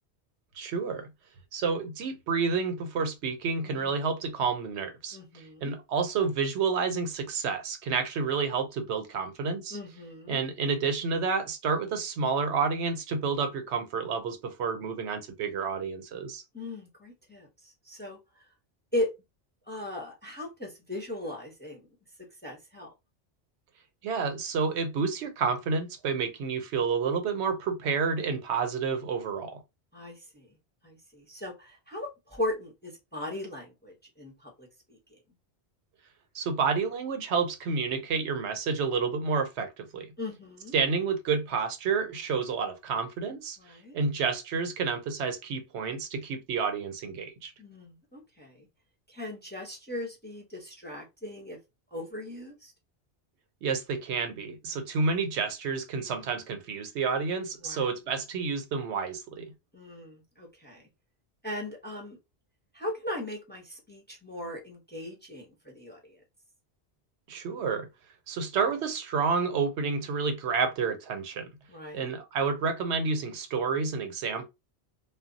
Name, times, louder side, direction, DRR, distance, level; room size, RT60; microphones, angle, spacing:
voice 1, 0.6-1.1 1.5-9.8 10.3-16.4 24.0-29.6 36.3-40.1 40.7-43.6 43.9-47.5 53.6-59.5 67.3-67.9 68.3-71.5 71.9-74.5, right 5 dB, 85° right, 0.9 m, -29 dB
voice 2, 3.6-4.1 5.1-5.7 9.7-10.4 16.5-18.5 18.9-19.1 19.7-21.9 22.4-22.9 29.9-30.5 30.8-35.2 40.2-40.7 43.6-44.0 47.6-48.7 49.1-51.6 51.9-52.7 57.6-57.8 59.7-60.8 61.4-62.2 62.7-66.2 71.7-72.1, left 1 dB, 10° left, 0.7 m, -38 dB
2.3 x 2.0 x 3.7 m
omnidirectional pair, 1.1 m